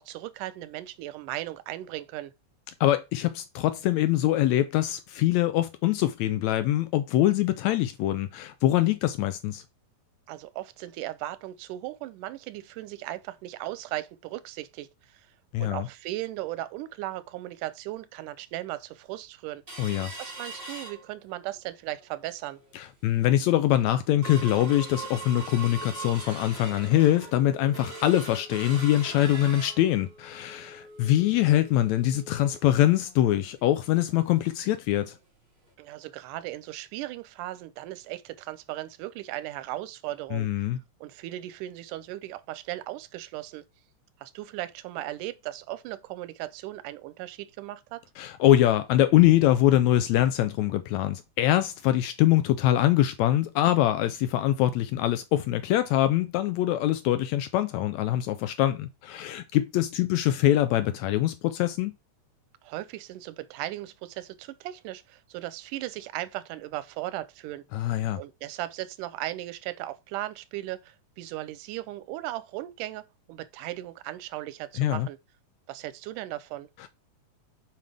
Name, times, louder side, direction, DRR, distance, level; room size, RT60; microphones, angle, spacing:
voice 1, 0.0-2.3 10.3-15.3 15.6-19.6 20.2-22.6 35.8-40.5 41.0-43.6 44.2-48.0 62.6-75.2 75.7-76.7, right 15 dB, 90° right, 2.2 m, -37 dB
voice 2, 2.8-9.6 15.5-15.9 19.8-20.1 22.7-35.1 40.3-40.8 48.2-61.9 67.7-68.2 74.8-75.1, left 13 dB, 80° left, 1.7 m, -23 dB
sound 1, 19.7-21.5 21.9-22.0 22.4-22.7 23.2-23.3 23.7-34.2 34.5-34.6 35.0-35.2 35.7-35.8, right 2 dB, 20° right, 2.5 m, -42 dB
7.9 x 5.0 x 3.4 m
omnidirectional pair, 3.6 m